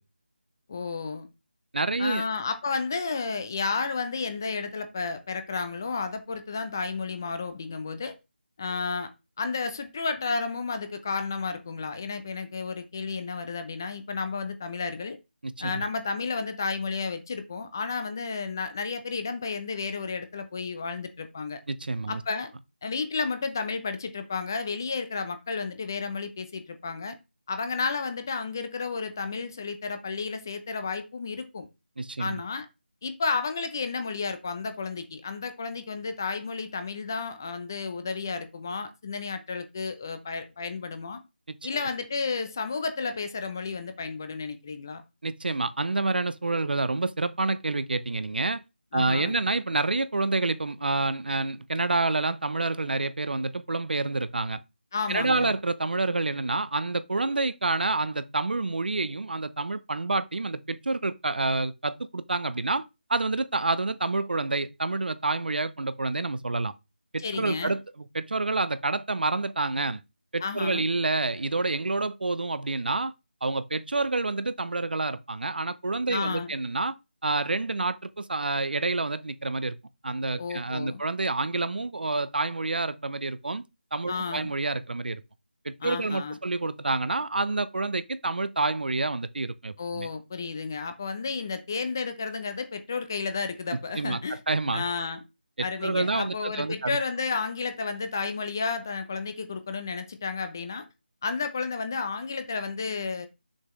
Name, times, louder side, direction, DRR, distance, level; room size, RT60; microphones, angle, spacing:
voice 1, 0.7-1.3 2.0-8.1 8.6-9.1 9.4-15.2 15.6-21.6 22.1-22.5 22.8-27.2 27.5-31.7 32.2-32.7 33.0-41.2 41.6-45.0 48.9-49.3 54.9-55.5 67.2-67.8 70.4-70.9 76.1-76.5 80.4-81.0 84.1-84.5 85.8-86.4 89.8-94.4 94.7-95.2 95.6-100.8 101.2-103.3, left 4 dB, 20° left, 0.5 m, -32 dB
voice 2, 1.7-2.2 15.4-15.8 21.7-22.2 32.0-32.4 45.2-48.6 48.9-54.6 55.1-62.8 63.1-66.7 67.1-70.0 70.3-73.1 73.4-77.0 77.2-79.8 80.0-83.6 83.9-85.2 85.6-90.1 93.9-94.8 95.6-97.0, right 3 dB, 60° right, 0.6 m, -28 dB
6.3 x 5.7 x 3.1 m
figure-of-eight pair, 175°, 6 cm